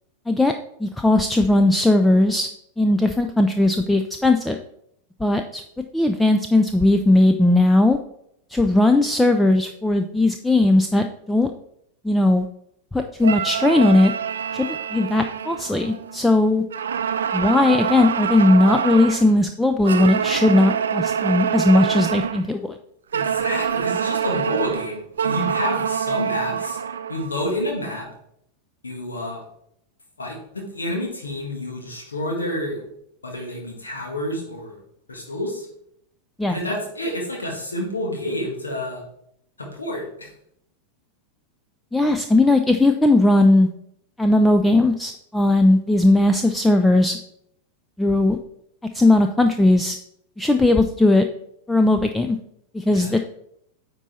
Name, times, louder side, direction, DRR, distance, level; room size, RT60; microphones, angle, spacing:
voice 1, 0.8-2.5 2.8-4.6 5.2-5.6 5.9-8.0 8.5-11.5 12.0-12.5 12.9-14.1 14.5-16.6 17.3-22.8 36.4-36.6 41.9-43.7 44.2-47.2 48.0-48.4 48.9-50.0 50.4-51.2 51.7-52.4 52.7-53.2, left 2 dB, 5° left, 6 dB, 0.4 m, -18 dB
sound 1, 13.2-16.3 16.7-19.3 19.8-22.5 23.1-27.3, right 8 dB, 65° right, 0.5 m, -25 dB
voice 2, 23.1-26.8 27.1-28.1 28.8-29.4 30.2-32.9 33.2-34.8 35.1-35.7 36.5-39.0 39.6-40.3 52.9-53.2, left 1 dB, 75° left, -1 dB, 1.7 m, -29 dB
9.0 x 4.0 x 4.2 m, 0.74 s
figure-of-eight pair, 90°, 0 cm